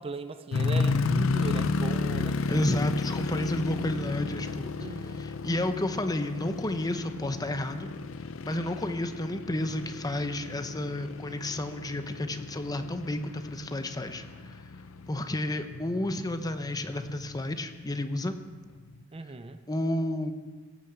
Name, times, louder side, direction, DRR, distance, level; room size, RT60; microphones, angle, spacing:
voice 1, 0.0-2.8 4.8-5.2 19.1-19.6, right 3 dB, 30° right, 10 dB, 0.5 m, -38 dB
sound 1, 0.5-17.5 18.1-18.2 18.8-19.0, left 4 dB, 70° left, 0.6 m, -33 dB
voice 2, 2.5-7.9 8.4-14.6 15.1-18.4 19.7-20.3, left 1 dB, 20° left, 8 dB, 0.7 m, -31 dB
16.5 x 7.0 x 7.9 m, 1.4 s
head